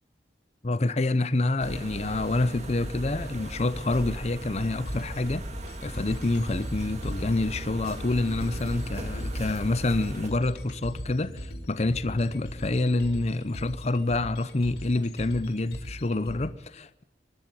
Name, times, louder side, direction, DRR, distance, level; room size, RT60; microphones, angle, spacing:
voice 1, 0.6-5.5 5.8-17.0, left 2 dB, 40° left, 0.7 m, -27 dB
sound 1, 1.6-10.3, right 1 dB, 40° right, 2.3 m, -38 dB
sound 2, 4.6-16.5, equal, 80° left, 4.7 m, -39 dB
24.0 x 11.5 x 9.7 m
head